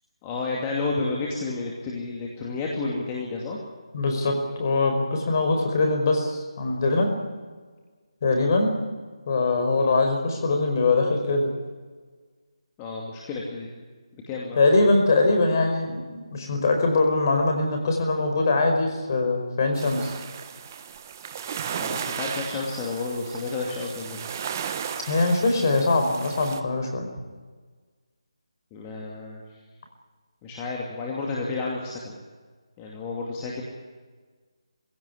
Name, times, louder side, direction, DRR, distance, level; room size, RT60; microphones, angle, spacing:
voice 1, 0.2-3.6 12.8-13.8 14.3-14.6 21.8-24.3 28.7-29.4 30.4-32.2 32.8-33.6, left 3 dB, 15° left, -2 dB, 2.5 m, -31 dB
voice 2, 3.9-7.1 8.2-8.7 9.3-11.5 14.6-20.1 25.1-27.1, left 3 dB, 40° left, 4 dB, 4.9 m, -22 dB
sound 1, 19.7-26.6, right 7 dB, 30° right, 1.2 m, -35 dB
21.5 x 16.5 x 9.9 m, 1.5 s
figure-of-eight pair, 160°, 3 cm